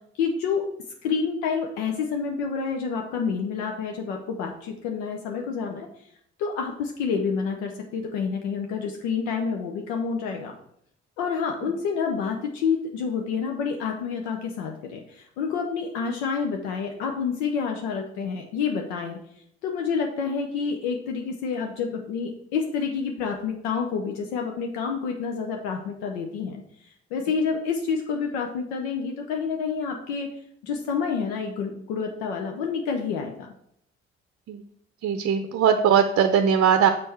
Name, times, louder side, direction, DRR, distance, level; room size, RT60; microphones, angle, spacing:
voice 1, 0.1-0.6 1.0-6.1 6.4-10.5 11.2-30.3 30.6-33.5, left 5 dB, 75° left, 2 dB, 0.7 m, -28 dB
voice 2, 35.0-36.9, right 8 dB, 50° right, 7 dB, 0.6 m, -20 dB
6.3 x 4.3 x 4.3 m, 0.70 s
hypercardioid pair, 45°, 32 cm